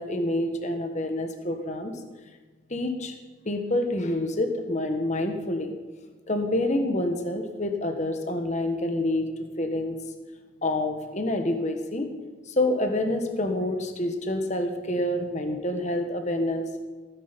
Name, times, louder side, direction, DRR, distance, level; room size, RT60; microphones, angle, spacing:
voice 1, 0.0-1.9 2.7-3.2 3.4-5.7 6.3-9.3 9.6-9.9 10.6-12.1 12.5-16.7, left 1 dB, 35° left, 5 dB, 1.3 m, -27 dB
17.0 x 10.5 x 5.3 m, 1.4 s
head